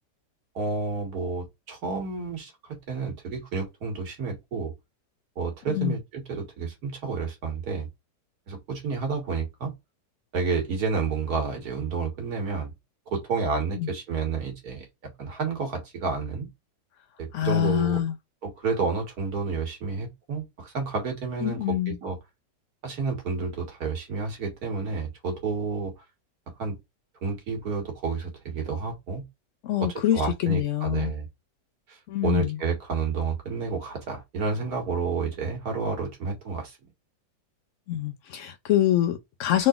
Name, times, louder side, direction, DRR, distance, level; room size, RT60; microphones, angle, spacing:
voice 1, 0.6-4.7 5.4-7.9 8.5-9.7 10.3-12.7 13.1-14.9 15.2-16.5 17.2-18.0 18.4-22.2 22.8-25.9 26.6-26.7 27.2-29.2 29.8-31.3 31.9-32.0 32.2-36.8, right 4 dB, 60° right, 2.0 m, -30 dB
voice 2, 17.3-18.1 21.4-22.0 29.6-31.1 32.1-32.6 37.9-39.7, left 12 dB, 75° left, 0.7 m, -25 dB
3.8 x 3.8 x 2.4 m
omnidirectional pair, 1.9 m